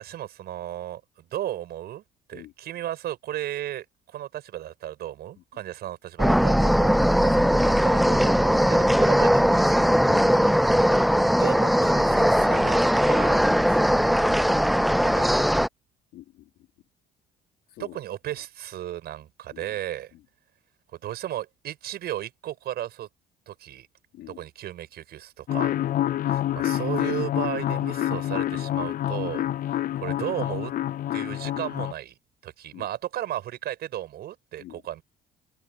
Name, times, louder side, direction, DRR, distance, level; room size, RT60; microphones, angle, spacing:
voice 1, 0.0-2.0 2.3-9.8 11.4-14.1 15.0-15.6 17.8-20.1 20.9-23.1 23.5-23.9 24.3-25.8 26.3-30.7 31.1-32.2 32.4-35.0, right 12 dB, 65° right, 6.7 m, -35 dB
sound 1, 6.2-15.7, equal, ahead, 0.3 m, -20 dB
voice 2, 10.0-10.6 16.1-16.5 17.8-18.0 19.5-19.7 24.1-24.4 32.7-32.9 34.6-34.8, left 15 dB, 75° left, 4.4 m, -45 dB
sound 2, 25.5-31.9, left 12 dB, 55° left, 0.6 m, -27 dB
cardioid pair, 95°, 17 cm